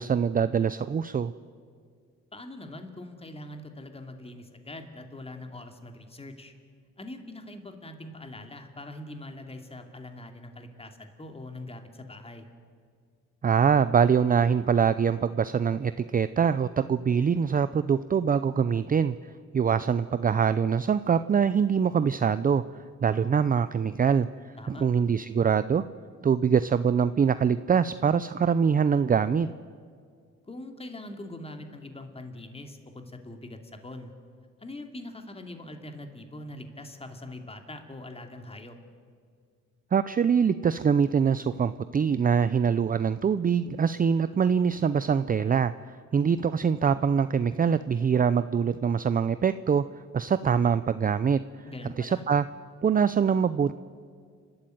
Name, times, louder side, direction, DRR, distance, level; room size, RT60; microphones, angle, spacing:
voice 1, 0.0-1.3 13.4-19.2 19.5-22.6 23.0-24.3 24.7-25.8 26.2-29.5 39.9-49.8 50.1-51.4 52.0-52.5 52.8-53.7, right 7 dB, 30° right, 14 dB, 0.5 m, -24 dB
voice 2, 2.3-6.5 7.0-12.5 24.6-24.9 30.5-34.1 34.6-38.8 51.7-52.2, left 1 dB, 20° left, 6 dB, 2.6 m, -42 dB
29.5 x 13.0 x 9.3 m, 2.1 s
cardioid pair, 90°, 30 cm